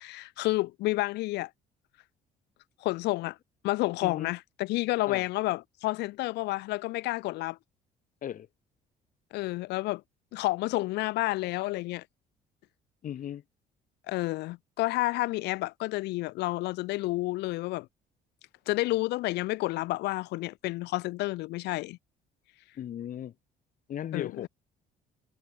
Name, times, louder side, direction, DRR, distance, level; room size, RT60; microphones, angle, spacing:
voice 1, 0.0-1.5 2.8-3.4 3.6-7.6 9.3-10.0 10.3-12.0 14.1-17.9 18.7-22.0 24.1-24.5, left 19 dB, 80° left, 0.7 m, -30 dB
voice 2, 13.0-13.4 22.8-23.3 23.9-24.5, left 10 dB, 55° left, 2.4 m, -36 dB
cardioid pair, 110°, 17 cm